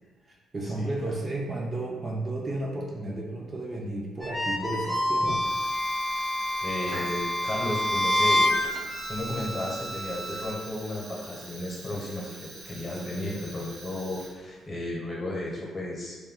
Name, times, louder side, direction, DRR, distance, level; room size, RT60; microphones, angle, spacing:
voice 1, 0.3-5.4 13.2-13.6, right 2 dB, 30° right, -2 dB, 0.4 m, -33 dB
sound 1, 4.2-10.5, left 1 dB, 15° left, 0.6 m, -28 dB
Fire, 5.4-14.7, right 2 dB, 80° right, 0.7 m, -44 dB
voice 2, 6.6-8.5 9.1-12.3 12.6-16.2, left 1 dB, 35° left, -3 dB, 0.8 m, -34 dB
2.2 x 2.2 x 3.6 m, 1.3 s
cardioid pair, 90°, 0 cm